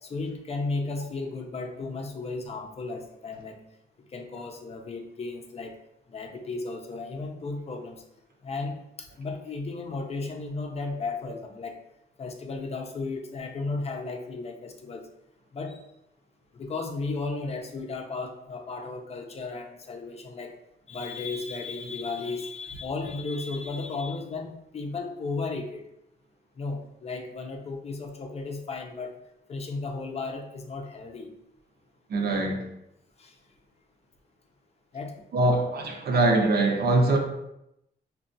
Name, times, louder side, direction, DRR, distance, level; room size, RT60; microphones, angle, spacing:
voice 1, 0.0-3.6 4.1-5.8 6.1-8.0 8.4-11.8 12.2-15.1 15.5-15.8 16.5-20.5 20.9-25.8 26.6-29.1 29.5-31.3 33.2-33.3 34.9-35.1, left 3 dB, 35° left, 3 dB, 0.5 m, -34 dB
voice 2, 32.1-32.6 35.3-37.2, right 2 dB, 60° right, 2 dB, 0.7 m, -23 dB
5.5 x 2.2 x 2.6 m, 0.83 s
wide cardioid pair, 125°, 18 cm